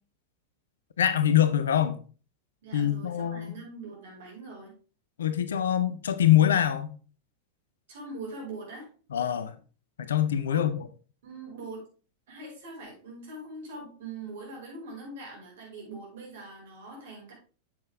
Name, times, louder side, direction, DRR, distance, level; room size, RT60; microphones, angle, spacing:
voice 1, 1.0-2.0 2.7-3.5 5.2-6.9 9.1-9.5 10.0-10.8, left 11 dB, 65° left, 0.8 m, -24 dB
voice 2, 2.6-4.7 7.9-8.9 10.5-10.7 11.2-11.9 12.3-17.3, right 2 dB, 55° right, 5.3 m, -42 dB
7.8 x 7.6 x 3.6 m
figure-of-eight pair, 90°, 0 cm